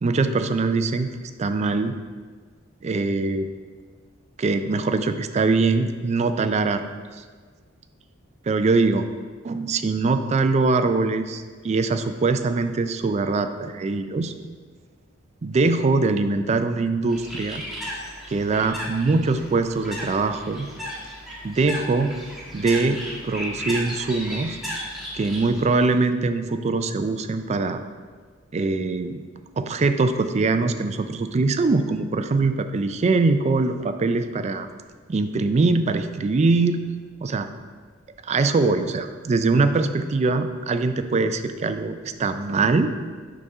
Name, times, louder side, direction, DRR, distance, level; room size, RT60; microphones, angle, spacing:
voice 1, 0.0-1.9 2.8-3.5 4.4-6.8 7.2-7.3 8.5-9.1 9.4-14.3 15.4-17.6 18.3-20.7 21.4-22.1 22.5-24.6 25.1-27.8 28.5-29.2 29.6-34.7 35.1-36.8 37.2-37.5 38.2-42.9, right 3 dB, 35° right, 9 dB, 0.3 m, -22 dB
Bird, 17.1-25.9, equal, ahead, 1.2 m, -35 dB
6.7 x 3.7 x 5.3 m, 1.5 s
head